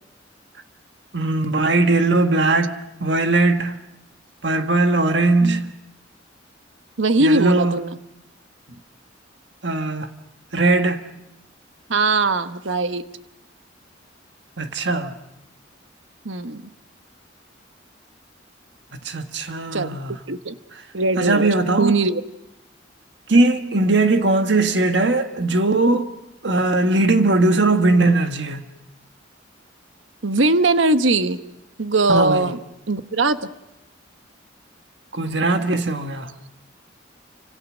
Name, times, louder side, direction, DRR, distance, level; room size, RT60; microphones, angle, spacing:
voice 1, 1.1-3.8 4.4-5.8 7.2-7.8 9.6-10.1 10.5-11.1 14.6-15.1 19.0-20.1 21.2-21.9 23.3-26.1 26.4-28.6 32.1-32.5 35.1-36.3, right 2 dB, 65° right, 1.7 m, -19 dB
voice 2, 7.0-8.0 11.9-13.0 16.2-16.6 19.7-20.0 20.3-20.6 20.9-21.5 21.8-22.2 30.2-31.4 31.8-32.6 32.9-33.4, right 2 dB, 85° right, 1.3 m, -20 dB
29.0 x 26.0 x 6.4 m
head